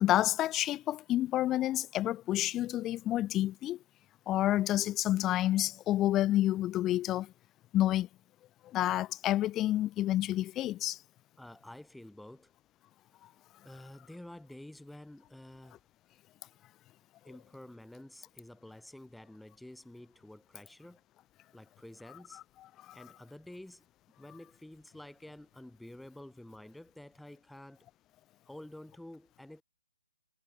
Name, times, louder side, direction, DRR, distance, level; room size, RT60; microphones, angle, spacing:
voice 1, 0.0-3.8 4.3-7.3 7.7-8.1 8.7-11.0 22.9-23.0, left 14 dB, 15° left, 0.5 m, -29 dB
voice 2, 11.4-12.5 13.2-13.3 13.6-15.8 17.2-21.0 21.5-22.4 22.9-23.9 24.2-27.9 28.5-29.6, left 1 dB, ahead, 1.1 m, -50 dB
figure-of-eight pair, 135°, 0 cm